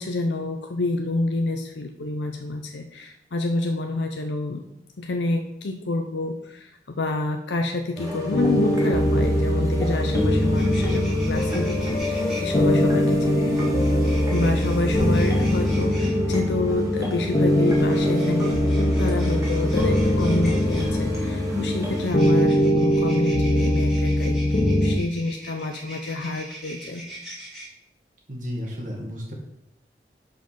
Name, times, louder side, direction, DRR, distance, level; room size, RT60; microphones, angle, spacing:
voice 1, 0.0-4.6 5.0-13.6 14.3-27.0, left 2 dB, 90° left, 5 dB, 0.6 m, -28 dB
sound 1, 8.0-22.1, left 1 dB, 20° right, 1.7 m, -31 dB
sound 2, 8.3-25.0, equal, 30° left, 0.8 m, -22 dB
sound 3, 10.4-12.4 13.5-16.1 17.5-20.9 21.9-27.7, right 1 dB, ahead, 2.4 m, -42 dB
voice 2, 28.3-29.3, equal, 45° right, -1 dB, 1.9 m, -32 dB
5.5 x 5.3 x 5.7 m, 0.79 s
head